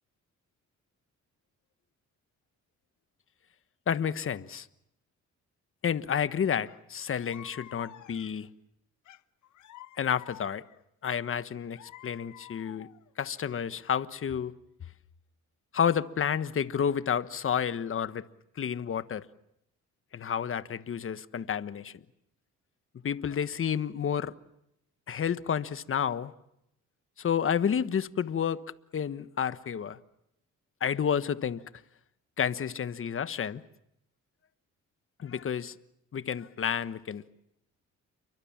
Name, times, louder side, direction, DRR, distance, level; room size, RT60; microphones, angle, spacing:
voice 1, 3.9-4.7 5.8-8.5 10.0-10.6 11.0-12.9 13.2-14.5 15.7-18.3 18.6-19.2 20.1-21.9 23.0-24.3 25.1-26.3 27.2-28.6 28.9-30.0 30.8-31.6 32.4-33.6 35.2-35.8 36.1-37.2, left 8 dB, 45° left, 1.3 m, -30 dB
sound 1, 6.7-6.8 7.1-8.5 9.1-10.8 11.3-13.1, left 13 dB, 75° left, 1.0 m, -50 dB
30.0 x 23.0 x 7.4 m
cardioid pair, 90°, 30 cm